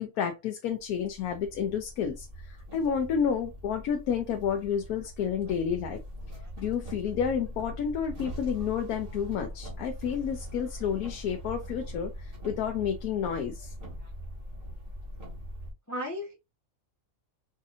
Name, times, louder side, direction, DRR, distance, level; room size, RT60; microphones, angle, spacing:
voice 1, 0.0-6.0 6.6-13.7, left 7 dB, 85° left, 1.1 m, -30 dB
sound 1, 0.8-15.7, equal, 40° right, 1.6 m, -42 dB
voice 2, 15.9-16.4, equal, 20° left, 0.4 m, -37 dB
5.1 x 2.6 x 2.4 m
omnidirectional pair, 1.5 m